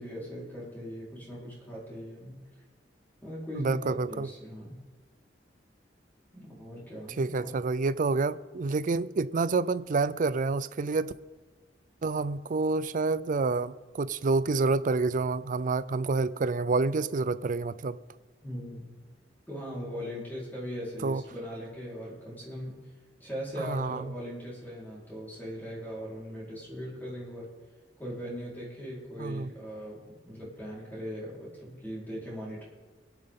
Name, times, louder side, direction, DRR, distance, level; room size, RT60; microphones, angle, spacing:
voice 1, 0.0-2.4 3.2-4.8 6.3-7.6 18.4-19.0 19.5-22.9 23.2-27.5 28.0-32.6, equal, 10° left, 4.3 m, -39 dB
voice 2, 3.5-4.3 7.2-11.1 12.0-18.0 21.0-21.2 23.6-24.1 29.2-29.5, right 3 dB, 45° right, 0.5 m, -28 dB
23.5 x 10.5 x 3.7 m
head